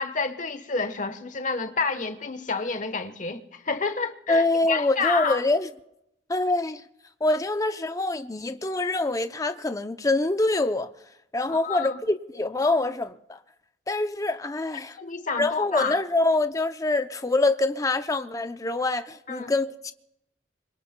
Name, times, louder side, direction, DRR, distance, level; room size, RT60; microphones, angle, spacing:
voice 1, 0.0-5.4 11.5-12.0 15.0-16.0 19.3-19.5, left 4 dB, 45° left, 1.0 m, -29 dB
voice 2, 4.3-5.7 6.3-6.8 7.2-10.9 11.3-13.4 13.9-15.0 15.4-19.9, left 2 dB, 20° left, 0.5 m, -25 dB
26.0 x 22.5 x 2.2 m
head